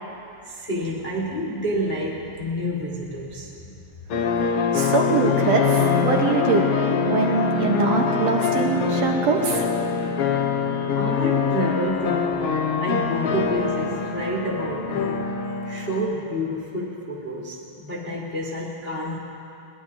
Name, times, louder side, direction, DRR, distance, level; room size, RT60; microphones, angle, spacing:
voice 1, 0.4-3.7 10.9-15.2 15.6-19.2, equal, 60° left, -4 dB, 0.6 m, -29 dB
sound 1, 4.1-16.0, left 6 dB, 75° left, 1.3 m, -24 dB
voice 2, 4.7-6.7 7.1-9.6, right 4 dB, 65° right, 1 dB, 1.9 m, -23 dB
22.0 x 19.0 x 2.7 m, 2.8 s
omnidirectional pair, 3.7 m